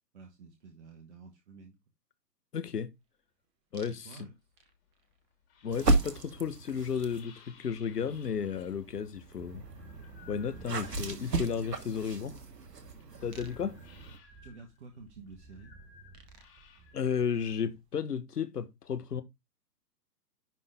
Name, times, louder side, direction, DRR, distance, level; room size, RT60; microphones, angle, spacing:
voice 1, 0.1-1.8 3.9-4.3 10.3-10.8 11.0-11.6 14.4-15.7, right 4 dB, 45° right, 1.3 m, -50 dB
voice 2, 2.5-2.9 3.7-4.3 5.6-9.6 10.3-12.4 13.2-13.8 16.9-19.2, left 7 dB, 65° left, 1.3 m, -33 dB
sound 1, 3.7-4.3 4.6-5.0 7.5-7.6 7.8-17.9, right 3 dB, 10° right, 0.8 m, -55 dB
sound 2, 4.3-11.6 12.0-17.8, left 6 dB, 35° left, 2.3 m, -60 dB
sound 3, 5.7-7.3 8.0-14.2, right 2 dB, 70° right, 1.5 m, -34 dB
10.5 x 3.7 x 3.6 m
figure-of-eight pair, 130°, 49 cm